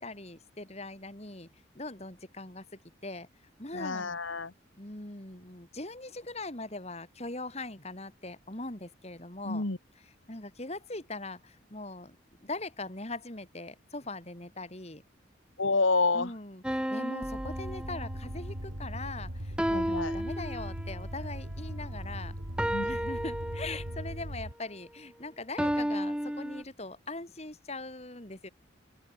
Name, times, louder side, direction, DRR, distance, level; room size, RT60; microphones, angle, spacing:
voice 1, 0.0-1.5 1.7-3.3 3.6-4.1 4.8-9.6 10.3-15.0 16.1-22.4 22.8-28.5, left 2 dB, 30° left, 2.8 m, -41 dB
voice 2, 3.7-4.5 9.5-9.8 15.6-16.3 19.7-20.2 22.7-22.9, left 3 dB, 80° left, 2.0 m, -28 dB
sound 1, 16.6-18.4 19.6-21.0 22.6-24.1 25.6-26.6, equal, 5° right, 1.2 m, -33 dB
sound 2, 17.2-24.5, equal, 85° right, 5.9 m, -39 dB
open air
head